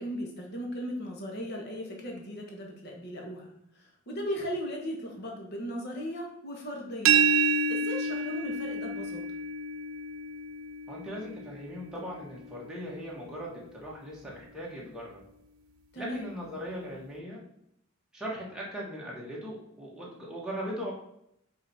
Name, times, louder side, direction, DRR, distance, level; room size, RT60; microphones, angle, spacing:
voice 1, 0.0-7.3 7.7-9.2 15.9-16.3, equal, 50° left, 0 dB, 1.3 m, -37 dB
sound 1, 7.1-12.8, right 4 dB, 90° right, 0.4 m, -29 dB
voice 2, 10.9-15.2 16.0-17.4 18.1-20.9, equal, 5° right, -5 dB, 1.5 m, -39 dB
5.4 x 4.1 x 4.2 m, 0.75 s
head